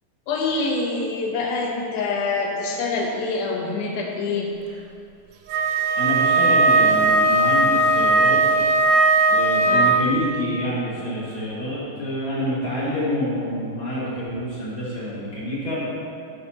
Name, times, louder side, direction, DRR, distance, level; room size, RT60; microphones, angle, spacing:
voice 1, 0.3-4.5 9.6-10.0, left 3 dB, 75° left, 0 dB, 1.8 m, -26 dB
Wind instrument woodwind instrument, 5.5-10.2, right 2 dB, 90° right, 1.9 m, -18 dB
voice 2, 6.0-8.4 9.3-15.8, equal, 40° left, -8 dB, 2.1 m, -27 dB
11.0 x 10.0 x 3.0 m, 2.4 s
omnidirectional pair, 4.9 m